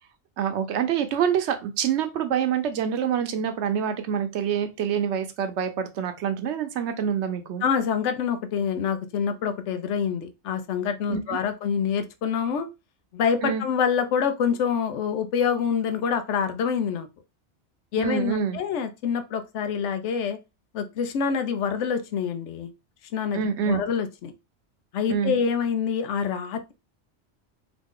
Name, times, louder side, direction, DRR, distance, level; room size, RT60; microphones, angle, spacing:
voice 1, 0.4-7.6 11.1-11.4 13.4-13.6 18.0-18.6 23.3-23.8 25.1-25.3, right 8 dB, 75° right, 0.9 m, -26 dB
voice 2, 7.6-12.7 13.1-17.1 17.9-20.4 20.7-22.7 23.1-24.3 24.9-26.7, left 7 dB, 80° left, 0.9 m, -26 dB
3.0 x 2.5 x 3.6 m
omnidirectional pair, 1.2 m